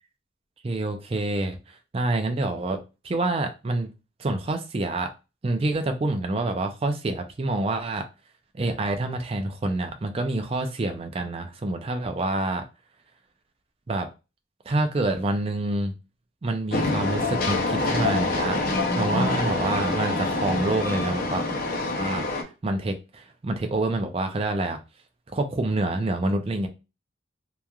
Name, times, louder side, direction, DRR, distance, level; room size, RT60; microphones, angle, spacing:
voice 1, 0.6-3.9 4.2-5.1 5.4-8.1 8.5-12.6 13.9-14.1 14.7-16.0 16.4-18.6 19.0-21.5 22.0-22.2 22.6-24.8 25.3-26.7, right 2 dB, 30° right, 0.3 m, -27 dB
Train, 16.7-22.4, left 2 dB, 45° left, 0.5 m, -26 dB
3.0 x 2.3 x 2.3 m
head